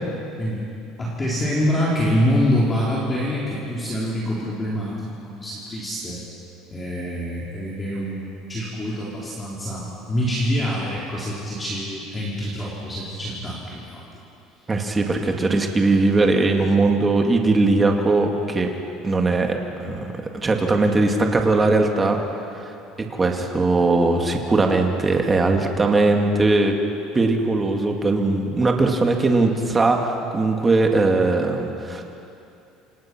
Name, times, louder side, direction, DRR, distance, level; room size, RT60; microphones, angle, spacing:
voice 1, 1.0-6.2 6.7-14.0 15.3-15.4, equal, 15° left, -6 dB, 3.6 m, -25 dB
voice 2, 14.7-18.7 19.0-22.2 22.6-22.7 23.1-26.8 27.1-32.0, right 3 dB, 15° right, 2 dB, 2.1 m, -20 dB
28.0 x 27.5 x 6.1 m, 2.7 s
cardioid pair, 170°, 0 cm